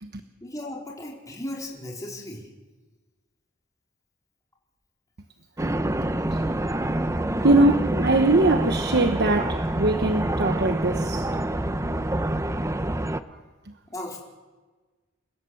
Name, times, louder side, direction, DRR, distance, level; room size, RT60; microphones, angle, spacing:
voice 1, 0.4-2.5 13.9-14.2, left 1 dB, 15° left, 4.4 m, -36 dB
sound 1, 5.6-13.2, right 1 dB, 15° right, 0.8 m, -26 dB
voice 2, 6.0-6.4 7.4-11.3 13.3-13.4, right 2 dB, 55° right, 1.2 m, -22 dB
29.0 x 17.0 x 7.9 m
head